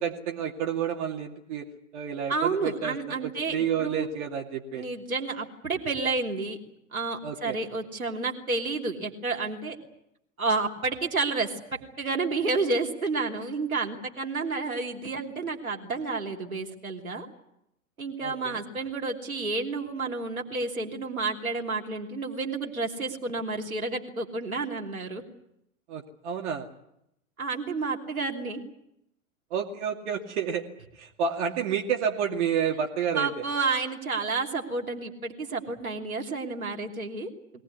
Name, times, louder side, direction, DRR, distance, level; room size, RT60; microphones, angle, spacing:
voice 1, 0.0-1.7 1.9-4.8 7.2-7.6 18.2-18.6 25.9-26.7 29.5-30.7 30.9-33.3, right 7 dB, 55° right, 0 dB, 2.6 m, -30 dB
voice 2, 2.3-4.1 4.8-6.6 6.9-9.8 10.4-11.5 12.0-17.3 18.0-25.2 27.4-28.6 33.1-37.3, right 3 dB, 85° right, 0 dB, 3.4 m, -30 dB
22.5 x 19.0 x 9.6 m, 0.80 s
figure-of-eight pair, 100°, 41 cm